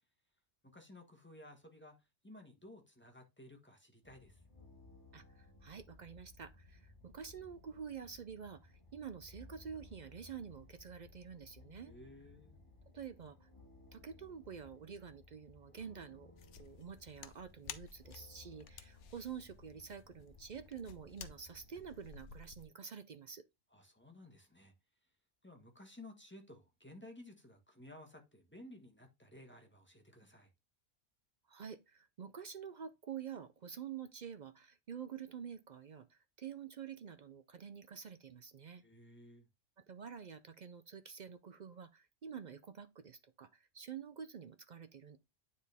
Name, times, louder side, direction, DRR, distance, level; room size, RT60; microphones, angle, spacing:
voice 1, 0.7-4.4 11.9-12.6 23.7-24.7 25.4-30.5 38.8-39.5, left 1 dB, 10° left, 1.4 m, -56 dB
sound 1, 4.0-21.9, left 3 dB, 25° left, 1.5 m, -60 dB
voice 2, 5.1-11.9 12.9-13.5 13.9-16.3 16.6-23.4 31.5-38.8 39.9-45.2, right 7 dB, 55° right, 0.5 m, -48 dB
sound 2, 16.4-22.7, left 7 dB, 80° left, 1.0 m, -54 dB
9.4 x 4.1 x 3.5 m
omnidirectional pair, 1.2 m